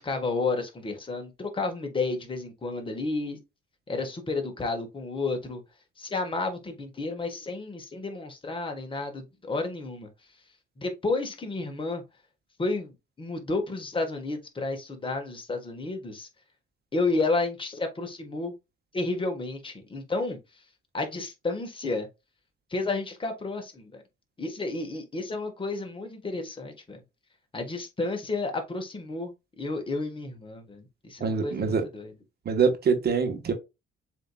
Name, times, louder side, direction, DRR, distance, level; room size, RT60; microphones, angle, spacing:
voice 1, 0.0-3.4 3.9-5.6 6.0-10.1 10.8-12.0 12.6-16.3 16.9-18.5 18.9-20.4 20.9-22.1 22.7-24.0 24.4-27.0 27.5-32.1, left 3 dB, 25° left, 1.4 m, -31 dB
voice 2, 31.2-31.8 32.4-33.5, right 5 dB, 55° right, 1.2 m, -24 dB
7.4 x 2.9 x 2.3 m
cardioid pair, 90°, 20 cm